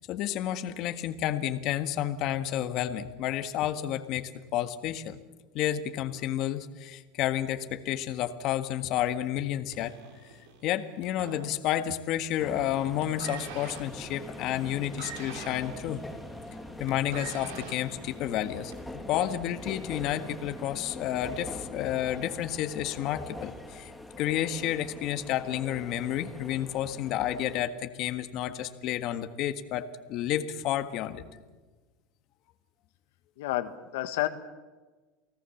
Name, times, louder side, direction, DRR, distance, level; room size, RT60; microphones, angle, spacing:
voice 1, 0.1-5.2 5.5-9.9 10.6-16.0 16.8-18.7 19.1-23.9 24.2-31.2, left 12 dB, 50° left, 9 dB, 1.5 m, -31 dB
sound 1, 9.7-12.1 12.3-12.7 13.0-19.0 19.8-19.9, right 6 dB, 80° right, 4.9 m, -45 dB
sound 2, 12.4-27.7, left 1 dB, 5° left, 2.2 m, -43 dB
voice 2, 33.4-34.3, left 15 dB, 80° left, 8 dB, 1.5 m, -30 dB
29.0 x 18.5 x 7.2 m, 1.3 s
supercardioid pair, 135°, 0 cm